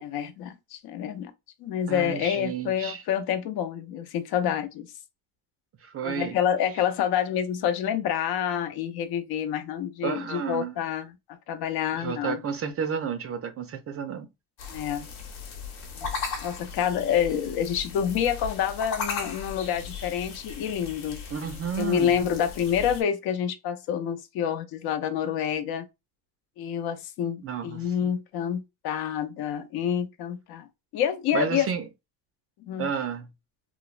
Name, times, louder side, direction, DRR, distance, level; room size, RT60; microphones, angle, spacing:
voice 1, 0.0-1.3 1.6-4.9 6.0-11.2 11.5-12.4 14.7-15.1 16.0-16.1 16.4-21.2 21.8-25.8 26.6-30.7 30.9-31.7 32.7-32.9, left 9 dB, 70° left, 0.6 m, -28 dB
voice 2, 1.9-3.0 5.8-6.4 10.0-10.8 11.9-14.3 21.3-22.1 27.4-28.1 31.3-31.9 32.8-33.3, right 7 dB, 35° right, 0.4 m, -31 dB
sound 1, 14.6-23.0, left 5 dB, 90° left, 0.9 m, -37 dB
3.1 x 2.0 x 2.4 m
cardioid pair, 130°, 40 cm